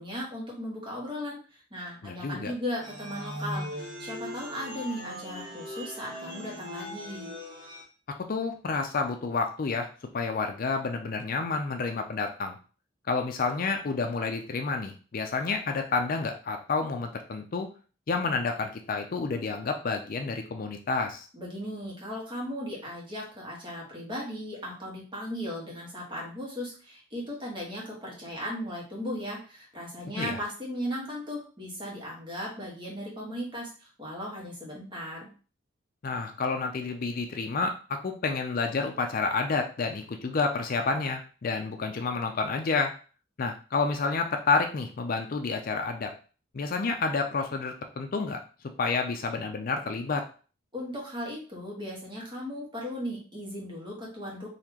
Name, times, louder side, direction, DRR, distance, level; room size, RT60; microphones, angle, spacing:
voice 1, 0.0-7.3 21.3-35.3 50.7-54.5, equal, 25° right, -3 dB, 1.4 m, -37 dB
voice 2, 2.0-2.5 8.1-9.9 10.1-12.6 13.1-17.7 18.1-21.3 30.2-30.4 36.0-42.9 43.4-46.1 46.5-48.4 48.8-50.2, left 4 dB, 50° left, 5 dB, 0.4 m, -29 dB
sound 1, 2.8-7.8, equal, 75° right, 1.4 m, -39 dB
4.1 x 2.8 x 2.9 m, 0.37 s
head